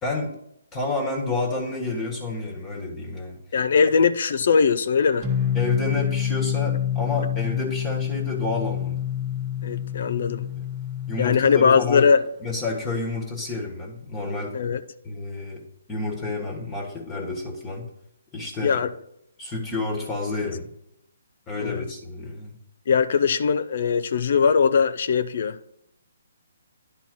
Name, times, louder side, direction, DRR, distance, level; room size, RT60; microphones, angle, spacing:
voice 1, 0.0-0.3 0.7-3.4 5.5-9.0 11.1-12.1 12.4-14.6 15.0-15.6 15.9-17.9 18.3-18.8 19.4-20.7 21.5-22.6, left 3 dB, 20° left, 1.5 m, -29 dB
voice 2, 3.5-5.3 9.6-10.5 11.2-12.2 14.5-14.8 18.6-18.9 21.6-21.8 22.9-25.7, left 6 dB, 55° left, 0.5 m, -20 dB
sound 1, 5.2-12.1, left 9 dB, 20° right, 1.1 m, -27 dB
10.5 x 4.1 x 6.1 m
figure-of-eight pair, 140°, 0 cm